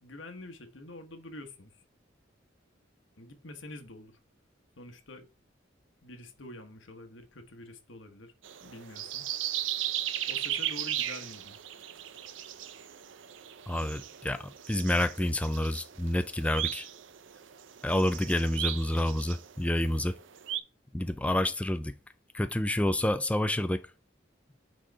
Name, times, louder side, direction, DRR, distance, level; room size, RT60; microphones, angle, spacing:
voice 1, 0.0-1.8 3.2-4.2 4.8-5.3 6.0-8.3 8.6-9.3 10.3-11.6, left 1 dB, 80° left, 1.3 m, -47 dB
sound 1, 8.4-20.6, right 12 dB, 75° right, 0.6 m, -37 dB
voice 2, 13.7-16.9 17.8-20.1 20.9-21.9 22.3-23.8, left 1 dB, 5° left, 0.4 m, -28 dB
6.3 x 4.1 x 4.6 m
head